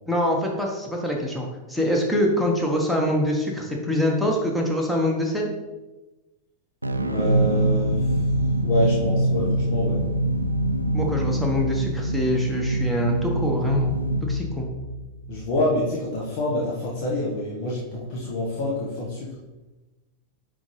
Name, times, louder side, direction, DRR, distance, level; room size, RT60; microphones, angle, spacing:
voice 1, 0.1-5.5 10.9-14.7, equal, ahead, 0 dB, 1.3 m, -24 dB
sound 1, 6.8-15.5, right 1 dB, 85° right, 0.5 m, -24 dB
voice 2, 7.1-8.3 8.6-10.1 15.3-19.4, left 1 dB, 45° left, -4 dB, 1.3 m, -27 dB
9.4 x 3.8 x 3.3 m, 1.1 s
figure-of-eight pair, 90°, 0 cm